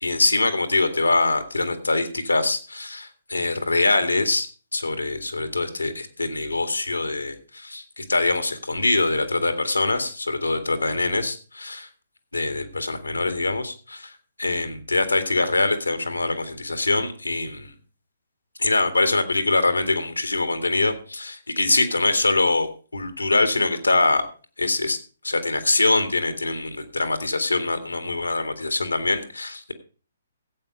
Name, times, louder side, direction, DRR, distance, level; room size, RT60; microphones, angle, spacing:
voice 1, 0.0-4.5 4.7-11.9 12.3-14.1 14.4-17.7 18.6-24.2 24.6-25.0 25.2-29.7, left 2 dB, 85° left, 8 dB, 2.0 m, -23 dB
14.5 x 8.4 x 5.1 m, 0.37 s
figure-of-eight pair, 130°, 0 cm